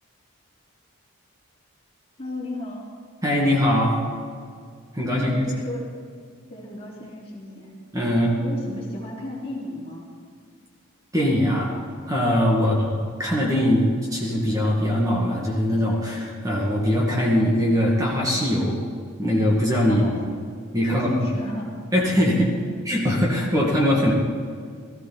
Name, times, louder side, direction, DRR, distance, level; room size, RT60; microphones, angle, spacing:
voice 1, 2.2-2.9 5.1-5.9 6.5-7.7 8.4-10.1 12.6-12.8 19.9-20.5 20.8-21.7 22.6-22.8 23.4-23.6, left 1 dB, 30° left, -3 dB, 2.8 m, -34 dB
voice 2, 3.2-4.0 4.9-5.5 7.9-8.4 11.1-11.7 12.1-18.8 19.2-20.0 20.7-21.2 21.9-22.5 22.8-24.1, equal, 15° right, -3 dB, 2.1 m, -21 dB
17.5 x 14.5 x 4.2 m, 2.1 s
head